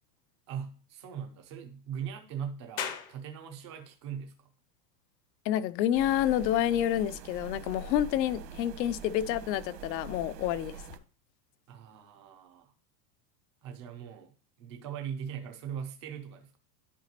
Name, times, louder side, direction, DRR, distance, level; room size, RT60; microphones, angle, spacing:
voice 1, 0.5-4.5 11.7-12.7 13.6-14.3 14.6-16.5, right 8 dB, 20° right, 0.3 m, -40 dB
sound 1, 2.8-15.9, left 8 dB, 30° left, 0.6 m, -49 dB
voice 2, 5.5-10.8, left 11 dB, 75° left, 0.7 m, -28 dB
sound 2, 5.9-11.0, right 6 dB, 75° right, 1.3 m, -44 dB
11.0 x 5.0 x 2.8 m
supercardioid pair, 175°, 50 cm